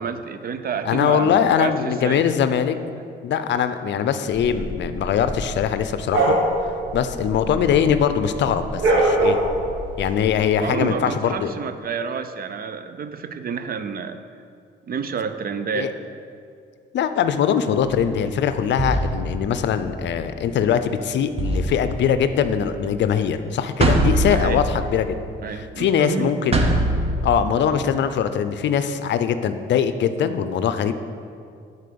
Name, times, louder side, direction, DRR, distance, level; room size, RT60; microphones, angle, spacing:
voice 1, 0.0-2.3 10.6-14.2 14.9-15.9 23.8-24.6 25.4-26.3, right 6 dB, 50° right, 9 dB, 0.5 m, -29 dB
voice 2, 0.9-2.8 3.2-6.4 6.9-9.4 10.0-11.5 15.7-15.9 16.9-25.1 25.5-26.7 27.2-30.9, left 8 dB, 65° left, 10 dB, 0.5 m, -22 dB
sound 1, 4.4-8.0 8.3-10.3, right 2 dB, 85° right, 1.6 m, -23 dB
sound 2, 17.8-18.1 18.8-20.2 21.4-22.8 23.8-25.3 26.5-27.4, right 1 dB, 30° right, 0.9 m, -23 dB
8.3 x 4.2 x 6.9 m, 2.4 s
cardioid pair, 90°, 20 cm